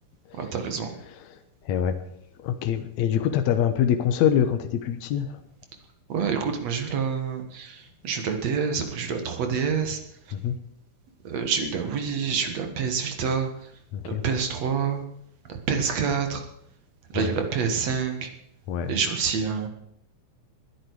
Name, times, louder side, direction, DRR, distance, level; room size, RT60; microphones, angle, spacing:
voice 1, 0.4-1.0 6.1-10.0 10.3-10.4 11.2-13.7 14.1-15.0 15.5-16.4 17.1-18.3 18.9-19.7, right 6 dB, 60° right, 5 dB, 2.8 m, -27 dB
voice 2, 1.6-2.0 2.4-5.4 10.3-10.6 13.9-14.2 17.2-17.3 18.7-18.9, left 9 dB, 70° left, 8 dB, 2.3 m, -24 dB
21.0 x 9.8 x 4.9 m, 0.74 s
omnidirectional pair, 3.5 m